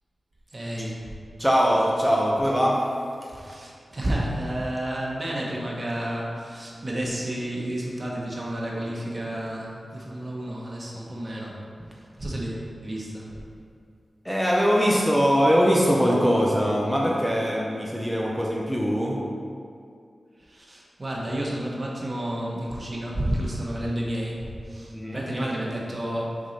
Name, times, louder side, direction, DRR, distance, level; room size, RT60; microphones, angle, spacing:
voice 1, 0.5-1.0 3.4-11.5 12.2-13.3 20.5-26.4, right 1 dB, 45° right, -4 dB, 1.2 m, -31 dB
voice 2, 1.4-3.6 14.2-19.3 24.9-25.3, equal, ahead, -3 dB, 0.7 m, -22 dB
6.2 x 3.7 x 4.2 m, 2.4 s
wide cardioid pair, 65°, 0 cm